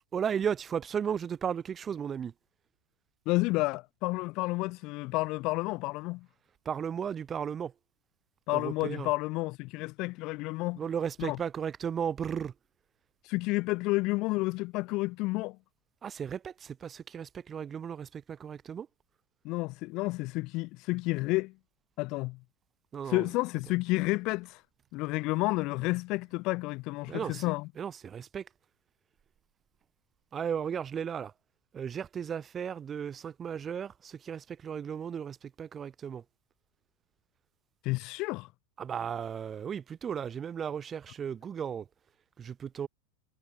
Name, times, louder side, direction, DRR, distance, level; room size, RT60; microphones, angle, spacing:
voice 1, 0.1-2.3 6.7-7.7 8.5-9.1 10.8-12.5 16.0-18.9 22.9-23.3 27.1-27.4 27.8-28.5 30.3-31.3 31.7-36.2 38.8-41.9 42.4-42.9, right 8 dB, 20° right, 4.0 m, -35 dB
voice 2, 3.2-6.3 8.5-10.8 11.2-11.4 13.2-15.6 19.4-21.5 22.0-22.4 23.1-24.6 24.9-27.7 37.8-38.5, left 22 dB, 45° left, 3.2 m, -30 dB
supercardioid pair, 150°, 0 cm